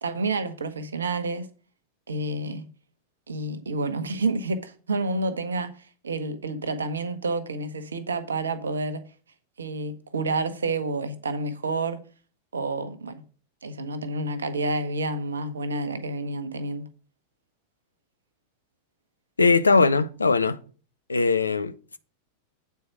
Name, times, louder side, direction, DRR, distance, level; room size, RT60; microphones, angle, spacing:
voice 1, 0.0-1.5 2.1-2.6 3.3-5.7 6.0-9.0 9.6-12.0 12.5-13.2 13.6-16.9, right 2 dB, 70° right, 1.0 m, -29 dB
voice 2, 19.4-20.6 21.1-22.0, left 4 dB, 75° left, 0.6 m, -20 dB
8.4 x 4.6 x 6.1 m
figure-of-eight pair, 90°, 0 cm